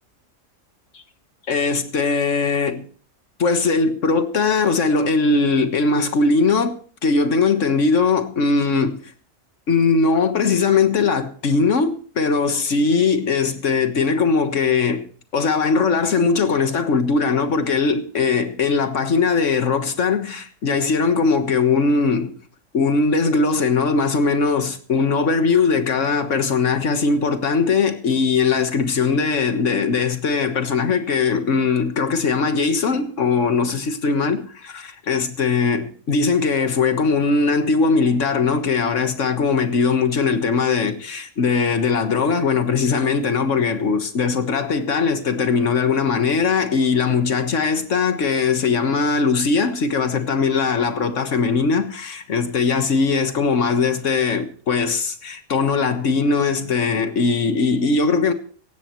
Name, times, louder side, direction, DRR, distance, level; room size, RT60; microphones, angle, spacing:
voice 1, 1.5-2.9 3.4-9.1 9.7-22.3 22.7-58.3, left 4 dB, 70° left, 1.7 m, -20 dB
17.0 x 15.5 x 3.1 m
omnidirectional pair, 1.3 m